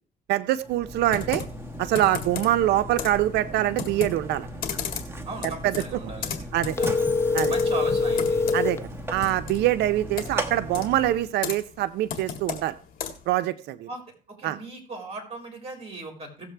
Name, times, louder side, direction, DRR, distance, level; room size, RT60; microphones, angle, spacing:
voice 1, 0.3-1.4 1.8-4.5 5.6-5.8 6.5-6.8 7.3-7.5 8.5-8.8 9.1-12.7 13.3-13.9 14.4-14.6, right 13 dB, 80° right, 12 dB, 0.6 m, -24 dB
Mechanisms, 0.6-11.3, right 1 dB, 15° right, 1.3 m, -37 dB
Computer keyboard, 1.1-13.4, left 7 dB, 55° left, 1.9 m, -36 dB
voice 2, 5.3-6.4 6.8-6.9 7.5-8.5 13.9-14.0 14.3-16.5, right 3 dB, 35° right, 2 dB, 4.0 m, -37 dB
sound 1, 6.7-8.8, left 3 dB, 15° left, 0.5 m, -23 dB
17.0 x 7.4 x 3.3 m, 0.41 s
cardioid pair, 110°, 17 cm